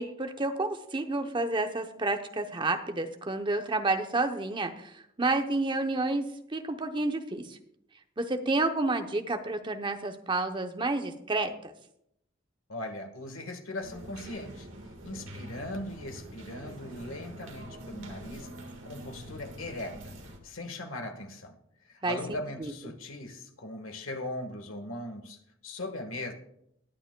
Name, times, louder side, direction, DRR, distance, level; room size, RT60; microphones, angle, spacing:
voice 1, 0.0-4.9 5.2-7.6 8.2-11.7 22.0-22.7, right 2 dB, 25° right, 6 dB, 0.8 m, -30 dB
voice 2, 12.7-14.7 15.0-18.5 18.8-20.1 20.4-21.6 21.9-26.3, left 1 dB, 80° left, 5 dB, 1.5 m, -39 dB
sound 1, 13.8-20.4, right 1 dB, 70° right, 1.7 m, -45 dB
20.5 x 9.1 x 2.2 m, 0.76 s
head